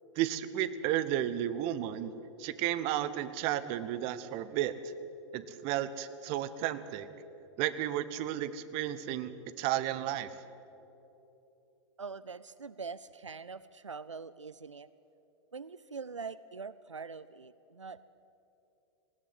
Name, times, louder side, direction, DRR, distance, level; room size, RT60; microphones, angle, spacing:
voice 1, 0.2-2.1 2.4-4.8 5.3-7.1 7.6-10.3, right 12 dB, 40° right, 14 dB, 1.1 m, -33 dB
voice 2, 12.0-14.9 15.5-18.0, right 5 dB, 90° right, 17 dB, 0.5 m, -43 dB
19.5 x 17.0 x 7.8 m, 3.0 s
figure-of-eight pair, 100°, 15 cm